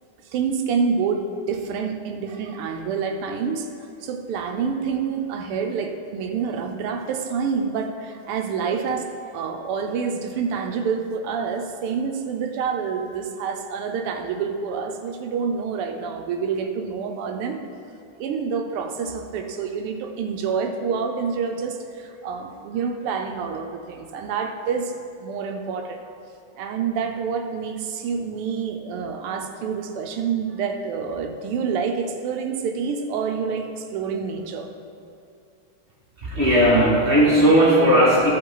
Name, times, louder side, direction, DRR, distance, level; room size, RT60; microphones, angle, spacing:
voice 1, 0.2-3.7 4.0-17.6 18.2-26.0 26.6-34.7, right 6 dB, 85° right, 4 dB, 1.6 m, -27 dB
voice 2, 36.2-38.3, equal, 25° right, -6 dB, 2.1 m, -16 dB
14.5 x 5.5 x 3.9 m, 2.5 s
omnidirectional pair, 2.4 m